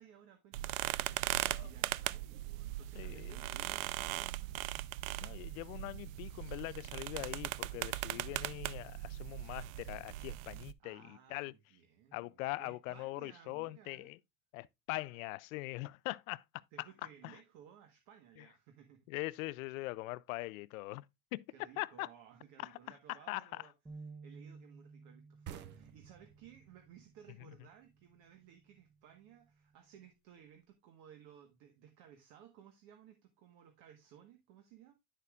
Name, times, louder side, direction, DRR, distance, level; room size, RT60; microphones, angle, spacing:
voice 1, 0.0-4.6 8.1-8.4 10.8-14.1 16.7-19.1 21.5-23.7 24.2-34.9, right 9 dB, 50° right, 1.3 m, -59 dB
sound 1, 0.5-10.7, right 16 dB, 80° right, 0.5 m, -39 dB
voice 2, 3.0-3.4 5.2-11.5 12.1-14.2 14.5-16.4 17.2-17.3 19.1-21.1 21.3-21.5 21.8-22.1 22.6-23.6, left 21 dB, 85° left, 0.5 m, -42 dB
sound 2, 23.9-30.1, right 4 dB, 10° right, 1.0 m, -56 dB
sound 3, 25.5-28.9, right 10 dB, 30° right, 0.5 m, -53 dB
9.9 x 6.8 x 2.4 m
supercardioid pair, 160°, 40 cm